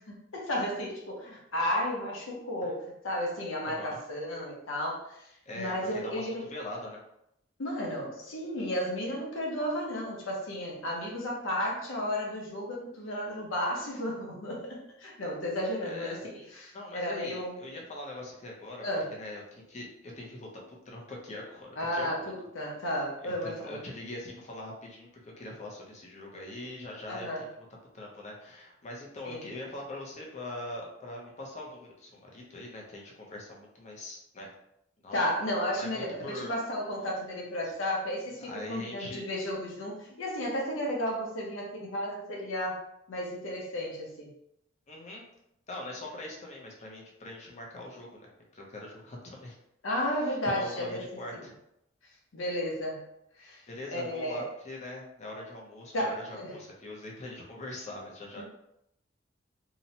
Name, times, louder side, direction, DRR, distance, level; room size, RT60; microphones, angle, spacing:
voice 1, 0.0-5.3 5.6-6.4 7.6-17.6 18.8-19.1 21.8-23.8 27.1-27.4 29.2-29.5 35.1-42.8 43.1-44.3 49.8-51.0 52.3-53.1 53.4-53.6 53.9-54.5 55.9-56.6 58.4-58.5, equal, 90° left, -1 dB, 0.7 m, -33 dB
voice 2, 3.6-4.0 5.5-7.0 15.9-16.2 16.7-22.3 23.2-27.7 27.9-34.5 35.0-35.3 35.6-36.5 38.4-39.2 44.9-45.3 45.7-49.6 50.3-51.5 53.7-58.4, left 1 dB, 35° left, -1 dB, 0.6 m, -42 dB
2.8 x 2.1 x 2.7 m, 0.78 s
head